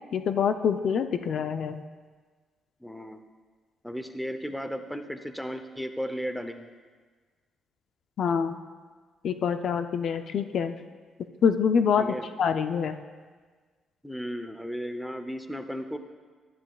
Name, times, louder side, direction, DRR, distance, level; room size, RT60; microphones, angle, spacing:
voice 1, 0.1-1.8 8.2-8.6 9.2-10.7 11.4-12.0 12.4-13.0, left 7 dB, 65° left, 9 dB, 0.4 m, -25 dB
voice 2, 2.8-3.2 3.8-6.7 12.0-12.3 14.0-16.0, equal, ahead, 8 dB, 0.7 m, -35 dB
12.0 x 11.0 x 2.4 m, 1.5 s
cardioid pair, 90°, 0 cm